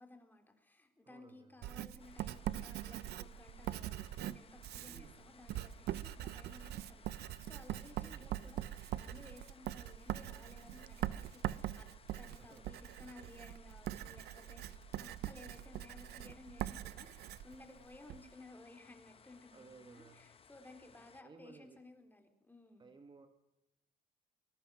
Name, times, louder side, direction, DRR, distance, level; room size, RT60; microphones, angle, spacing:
voice 1, 0.0-14.7 15.0-22.8, left 2 dB, 10° left, 4 dB, 3.8 m, -57 dB
voice 2, 1.0-1.6 4.9-5.2 8.0-8.4 12.4-12.7 18.1-18.2 19.5-20.3 21.2-21.8 22.8-23.3, right 4 dB, 25° right, 7 dB, 1.7 m, -58 dB
Writing, 1.6-18.2, right 13 dB, 75° right, 0.7 m, -43 dB
sound 1, 2.0-21.2, left 6 dB, 35° left, 1.4 m, -63 dB
24.0 x 21.0 x 6.3 m, 0.88 s
cardioid pair, 110°, 17 cm